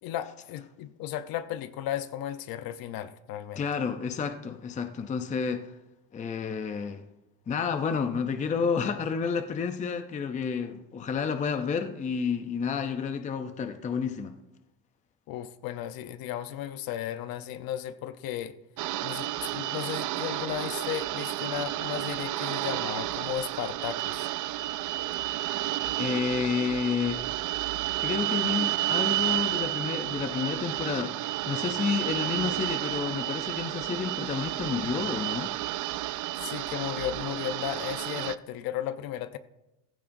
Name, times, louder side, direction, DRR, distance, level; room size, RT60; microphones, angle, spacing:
voice 1, 0.0-3.6 15.3-18.5 19.0-24.3 36.4-39.4, left 11 dB, 55° left, 0.8 m, -35 dB
voice 2, 3.6-5.7 6.1-7.0 7.5-14.3 26.0-27.2 28.0-35.5, left 6 dB, 20° left, 0.5 m, -30 dB
sound 1, 18.8-38.4, right 15 dB, 50° right, 0.4 m, -31 dB
18.0 x 15.5 x 2.6 m
cardioid pair, 165°, 41 cm